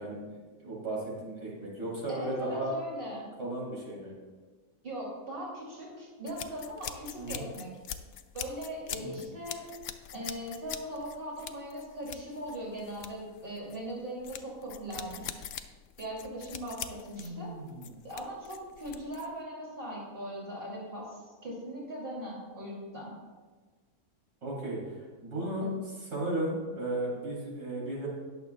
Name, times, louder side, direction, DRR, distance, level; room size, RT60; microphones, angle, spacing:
voice 1, 0.0-2.7 3.4-4.1 7.2-7.4 9.0-9.2 17.2-18.0 24.4-24.8 25.2-28.1, right 1 dB, 90° right, -5 dB, 3.5 m, -35 dB
voice 2, 2.1-3.3 4.8-7.7 8.3-9.7 10.1-15.4 16.0-17.5 18.0-23.1, right 1 dB, 35° right, -3 dB, 2.9 m, -40 dB
sound 1, 6.3-19.4, left 9 dB, 75° left, 1.0 m, -43 dB
20.0 x 6.9 x 2.3 m, 1.4 s
omnidirectional pair, 1.6 m